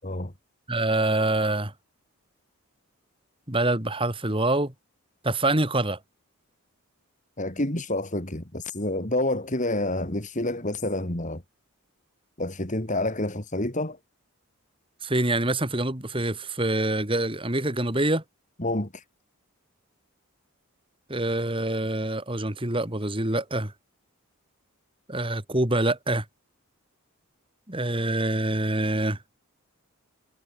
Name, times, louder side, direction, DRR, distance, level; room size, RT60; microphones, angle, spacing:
voice 1, 0.7-1.7 3.5-4.7 5.2-6.0 15.0-18.2 21.1-23.7 25.1-26.2 27.7-29.2, right 1 dB, 25° right, 2.9 m, -25 dB
voice 2, 7.4-11.4 12.4-14.0 18.6-19.0, left 1 dB, 35° left, 2.8 m, -28 dB
head